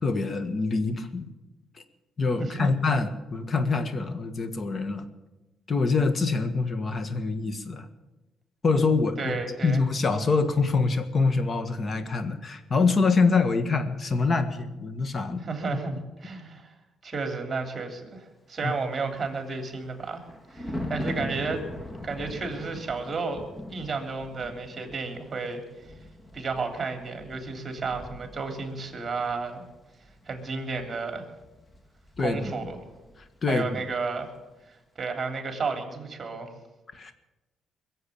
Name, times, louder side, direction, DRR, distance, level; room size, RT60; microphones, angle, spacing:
voice 1, 0.0-1.3 2.2-5.0 5.7-7.9 8.6-15.4 18.6-18.7 32.2-32.5 33.4-33.8 36.9-37.1, left 4 dB, 40° left, 10 dB, 1.6 m, -25 dB
voice 2, 2.4-2.8 9.2-9.8 15.4-16.7 17.0-20.2 20.5-21.6 22.0-23.4 23.7-25.6 26.3-29.6 30.3-31.3 32.2-32.8 33.5-34.3 35.0-36.5, right 4 dB, 35° right, 5 dB, 3.3 m, -32 dB
Thunder, 18.8-33.4 33.7-33.9, left 1 dB, 25° left, 1.9 m, -41 dB
21.5 x 7.8 x 8.7 m, 1.1 s
cardioid pair, 90°, 0 cm